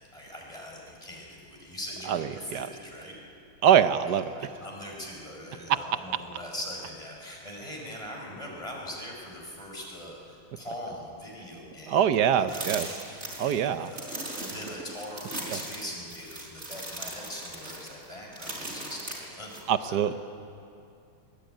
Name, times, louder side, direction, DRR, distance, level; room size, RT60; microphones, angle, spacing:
voice 1, 0.0-3.2 4.3-20.2, left 1 dB, 15° left, -1 dB, 5.1 m, -42 dB
voice 2, 2.1-2.7 3.6-4.3 11.9-12.9 13.4-13.9 15.5-15.6 19.7-20.1, right 9 dB, 60° right, 11 dB, 1.2 m, -24 dB
sound 1, 12.5-19.6, right 1 dB, 30° right, 5.3 m, -38 dB
24.0 x 21.0 x 9.0 m, 2.5 s
omnidirectional pair, 2.4 m